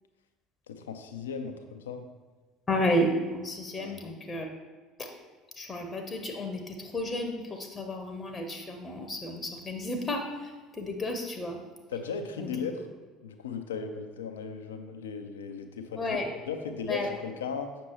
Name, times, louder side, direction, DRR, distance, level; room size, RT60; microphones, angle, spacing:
voice 1, 0.7-2.1 3.8-4.0 11.9-12.9 13.2-16.2 16.5-17.7, left 5 dB, 75° left, 7 dB, 0.5 m, -36 dB
voice 2, 2.7-4.5 5.0-5.1 5.6-11.6 12.4-12.7 16.0-16.3 16.9-17.1, left 1 dB, 25° left, 4 dB, 0.9 m, -32 dB
7.8 x 6.0 x 3.0 m, 1.3 s
figure-of-eight pair, 65°, 0 cm